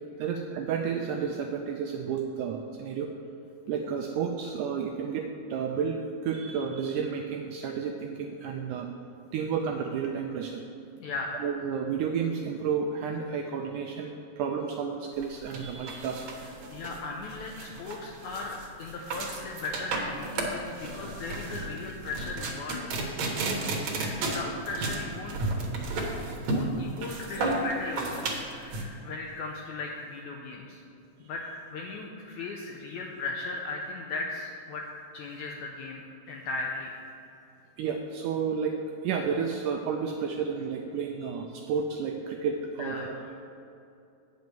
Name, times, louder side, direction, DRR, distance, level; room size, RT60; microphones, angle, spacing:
voice 1, 0.2-3.1 3.7-8.9 9.3-10.6 11.4-16.3 37.8-38.8 39.0-43.3, right 6 dB, 85° right, 3 dB, 1.8 m, -31 dB
voice 2, 11.0-11.4 16.7-25.5 26.4-30.8 31.2-34.9 35.1-36.9 42.8-43.1, left 3 dB, 80° left, 0 dB, 1.7 m, -37 dB
sound 1, 15.2-28.8, right 2 dB, 60° right, 2.2 m, -33 dB
9.5 x 6.3 x 6.8 m, 2.7 s
omnidirectional pair, 4.2 m